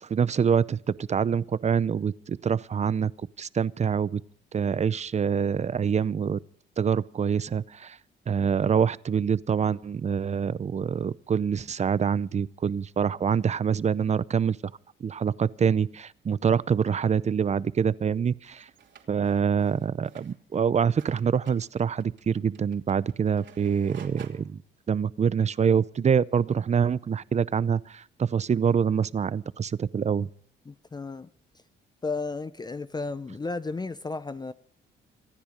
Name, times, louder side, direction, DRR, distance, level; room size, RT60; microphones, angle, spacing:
voice 1, 0.0-3.1 3.4-4.2 4.5-6.4 6.8-8.0 8.3-14.6 15.0-18.7 19.1-24.6 24.9-30.3, right 7 dB, 35° right, 0.6 m, -25 dB
sound 1, 18.5-24.3, right 8 dB, 65° right, 3.0 m, -52 dB
voice 2, 30.7-31.3 32.0-34.5, left 3 dB, 20° left, 0.6 m, -33 dB
25.5 x 10.0 x 5.2 m
cardioid pair, 90°, 20 cm